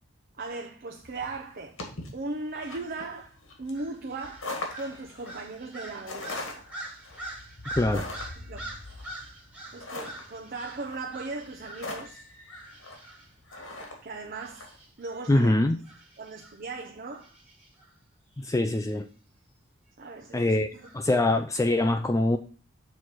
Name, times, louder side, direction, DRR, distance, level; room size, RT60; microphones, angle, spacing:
voice 1, 0.4-1.8 2.1-4.5 4.8-6.7 8.4-8.7 9.7-12.3 14.0-14.7 15.0-15.5 16.2-17.3 20.0-20.8, right 3 dB, 45° right, 0.7 m, -38 dB
sound 1, 1.0-14.8, left 2 dB, 80° left, 2.0 m, -41 dB
sound 2, 3.7-12.1 12.5-13.8 14.4-16.6 17.1-17.9 18.4-18.8 20.8-21.4, right 1 dB, 5° right, 1.6 m, -45 dB
voice 2, 7.8-8.1 15.3-15.8 18.4-19.1 20.3-20.7 20.9-22.4, left 2 dB, 15° left, 0.4 m, -23 dB
6.4 x 4.1 x 5.9 m
head